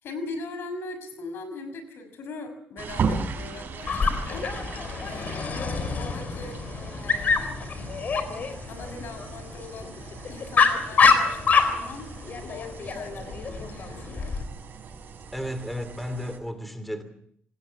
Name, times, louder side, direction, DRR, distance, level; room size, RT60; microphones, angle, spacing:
voice 1, 0.0-4.5 5.0-6.6 7.0-7.6 8.7-11.4 11.7-12.1 12.4-14.4, left 3 dB, 70° left, 10 dB, 6.1 m, -40 dB
sound 1, 2.8-16.4, right 5 dB, 55° right, 6.1 m, -37 dB
Dog, 3.9-14.4, left 5 dB, 45° left, 4.2 m, -26 dB
voice 2, 15.3-17.0, equal, ahead, 10 dB, 2.8 m, -33 dB
26.0 x 20.5 x 7.2 m, 0.66 s
cardioid pair, 125°, 4 cm